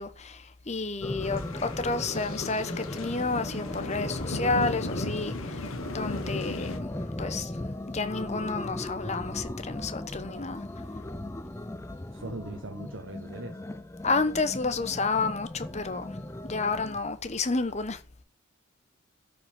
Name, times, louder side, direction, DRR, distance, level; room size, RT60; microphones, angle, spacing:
voice 1, 0.0-6.9 7.2-7.5 7.9-10.6 14.0-16.2 16.4-18.0, left 3 dB, 35° left, 1.0 m, -30 dB
sound 1, 1.0-17.0, left 1 dB, 15° left, 0.5 m, -37 dB
sound 2, 1.2-6.8, left 2 dB, 85° left, 1.5 m, -37 dB
voice 2, 12.1-13.6, right 2 dB, 60° right, 1.1 m, -40 dB
12.5 x 5.5 x 5.9 m
head